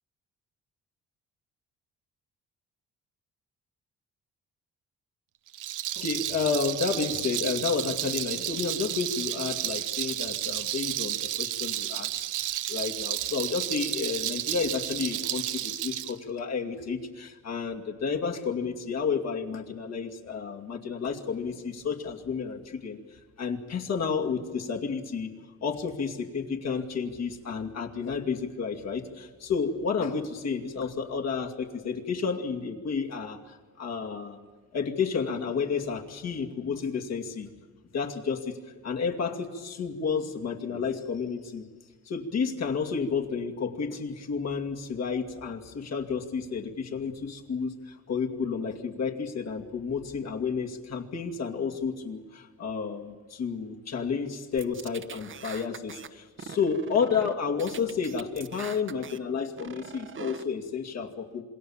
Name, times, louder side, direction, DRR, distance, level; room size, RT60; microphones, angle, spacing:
Rattle, 5.5-16.1, right 14 dB, 85° right, 0.9 m, -32 dB
voice 1, 6.0-23.0 23.4-34.4 34.7-37.5 37.9-38.6 38.8-41.7 42.0-61.4, left 5 dB, 60° left, 2 dB, 2.5 m, -31 dB
sound 1, 54.6-56.1 56.4-57.3 57.6-59.2 59.6-60.4, right 7 dB, 40° right, 1.1 m, -42 dB
26.5 x 21.0 x 7.2 m, 1.4 s
cardioid pair, 90°, 30 cm